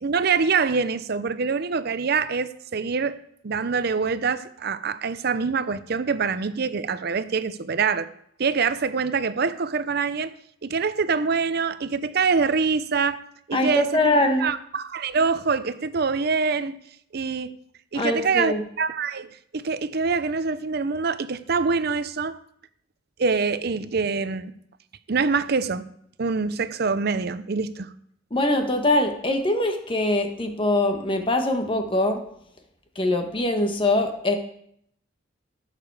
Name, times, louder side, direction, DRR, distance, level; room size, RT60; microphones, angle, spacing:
voice 1, 0.0-3.2 3.4-8.1 8.4-10.3 10.6-13.2 13.5-14.0 14.4-16.8 17.1-17.5 17.9-22.4 23.2-24.5 25.1-25.9 26.2-27.9, right 5 dB, 55° right, 0.6 m, -25 dB
voice 2, 13.5-14.5 17.9-18.6 28.3-32.2 32.9-34.4, left 2 dB, 25° left, 1.3 m, -23 dB
16.0 x 6.8 x 4.8 m
head